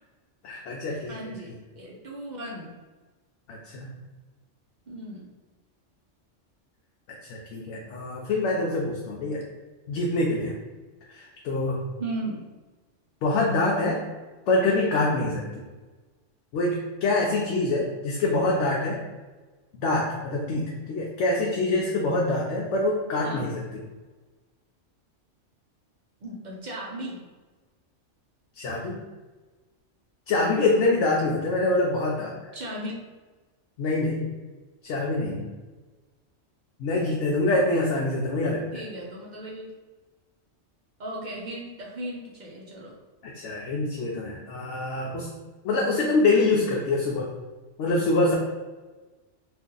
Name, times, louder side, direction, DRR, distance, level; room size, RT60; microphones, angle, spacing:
voice 1, 0.4-1.3 3.5-3.9 7.2-9.4 9.9-10.5 11.1-11.8 13.2-14.0 14.5-15.6 16.5-19.0 19.8-23.6 28.6-29.0 30.3-32.5 33.8-34.2 34.8-35.5 36.8-38.6 43.2-45.3 45.6-47.3 47.8-48.4, left 2 dB, 75° left, -2 dB, 0.9 m, -25 dB
voice 2, 1.1-2.7 4.9-5.2 12.0-12.4 20.5-20.6 23.2-23.5 26.2-27.2 32.5-32.9 38.7-39.7 41.0-43.0, right 1 dB, 55° right, -3 dB, 0.5 m, -36 dB
2.7 x 2.5 x 3.6 m, 1.3 s
omnidirectional pair, 1.3 m